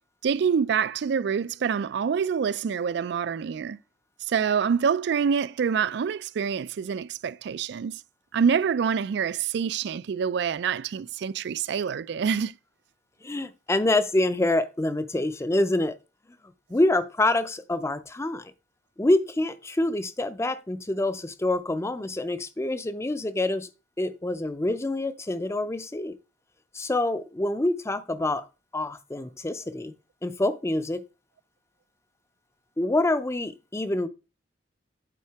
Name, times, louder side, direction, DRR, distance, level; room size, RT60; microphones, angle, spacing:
voice 1, 0.2-3.8 4.3-7.9 8.3-12.5, right 6 dB, 65° right, 0.3 m, -26 dB
voice 2, 13.2-16.0 16.7-18.5 19.0-23.7 24.0-26.2 26.7-28.5 28.7-29.9 30.2-31.0 32.8-34.1, left 2 dB, 15° left, 0.5 m, -26 dB
8.4 x 4.2 x 4.6 m
head